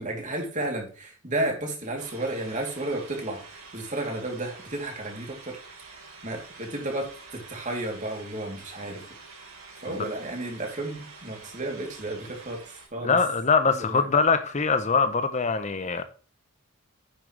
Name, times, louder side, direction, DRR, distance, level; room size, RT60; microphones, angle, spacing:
voice 1, 0.0-5.6 6.2-7.1 7.5-9.0 9.8-12.6 12.9-13.2 13.7-14.1, right 1 dB, 35° right, 2.9 m, -32 dB
sound 1, 2.0-12.9, right 4 dB, 70° right, 4.0 m, -47 dB
voice 2, 13.0-16.0, left 4 dB, 30° left, 0.7 m, -23 dB
10.0 x 7.5 x 3.3 m
head